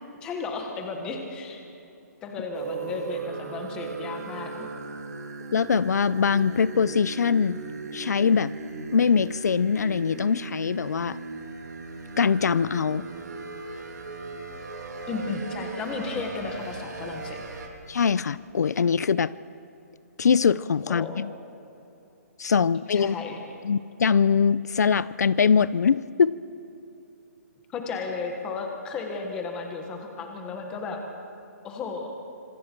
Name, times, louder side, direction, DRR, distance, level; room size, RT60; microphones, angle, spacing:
voice 1, 0.2-1.6 2.2-4.7 15.1-17.4 20.8-21.2 22.9-23.4 27.7-31.0 31.6-32.1, left 4 dB, 10° left, 3 dB, 1.4 m, -34 dB
sound 1, 2.5-17.7, right 3 dB, 85° right, 3.1 m, -37 dB
voice 2, 5.5-7.6 7.9-8.5 8.9-11.2 12.2-13.1 17.9-19.3 20.2-21.3 22.4-23.2 23.6-26.4, left 6 dB, 80° left, 18 dB, 0.5 m, -22 dB
26.0 x 25.0 x 4.6 m, 2.8 s
hypercardioid pair, 180°, 9 cm